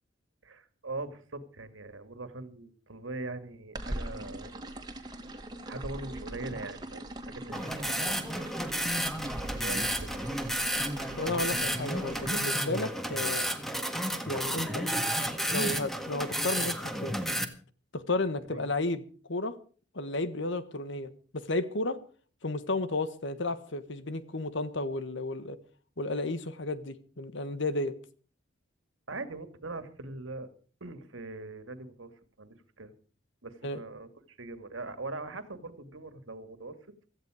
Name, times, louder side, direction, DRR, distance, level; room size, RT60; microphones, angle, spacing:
voice 1, 0.4-4.5 5.0-5.4 5.7-8.3 9.5-10.1 18.5-18.7 29.1-30.5 30.8-32.1 32.4-32.9 33.4-36.8, right 2 dB, 85° right, 2.2 m, -41 dB
sound 1, 3.7-12.3, right 1 dB, 20° right, 2.2 m, -41 dB
sound 2, 7.5-17.4, equal, ahead, 1.7 m, -32 dB
voice 2, 11.1-13.5 14.2-14.8 15.5-17.2 17.9-19.0 19.3-19.6 19.9-22.0 22.4-25.6 26.0-27.9 33.6-33.8, left 2 dB, 65° left, 1.5 m, -32 dB
17.0 x 14.0 x 5.0 m
head